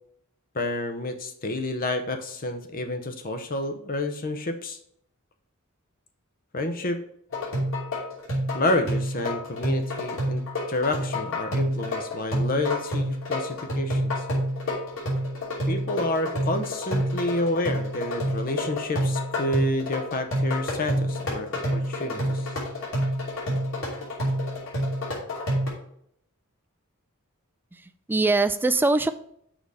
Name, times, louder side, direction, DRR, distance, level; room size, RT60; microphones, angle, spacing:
voice 1, 0.5-4.8 6.5-7.0 8.5-14.2 15.7-22.5, left 1 dB, 40° left, 7 dB, 0.7 m, -29 dB
sound 1, 7.3-25.7, equal, 65° left, 2.8 m, -28 dB
voice 2, 27.7-29.1, right 3 dB, 10° right, 10 dB, 0.3 m, -23 dB
6.2 x 4.9 x 5.4 m, 0.69 s
head